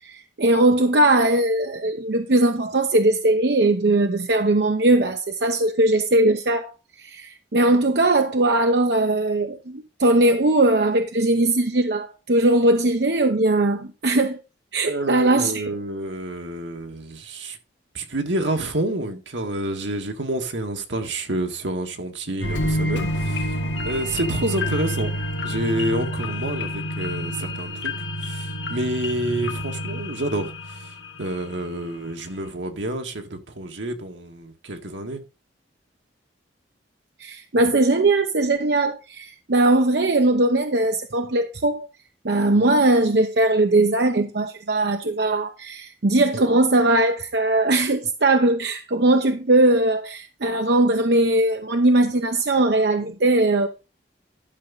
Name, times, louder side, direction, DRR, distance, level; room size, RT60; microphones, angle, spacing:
voice 1, 0.0-14.4 14.7-15.6 37.2-41.9 42.2-53.7, right 2 dB, 65° right, 0.8 m, -20 dB
voice 2, 14.8-17.6 17.9-23.5 23.8-25.1 25.4-27.9 28.2-30.9 31.2-35.2, right 1 dB, 85° right, 1.7 m, -28 dB
sound 1, 22.4-31.8 32.2-32.3, equal, 90° left, 1.7 m, -28 dB
12.0 x 6.0 x 4.0 m
head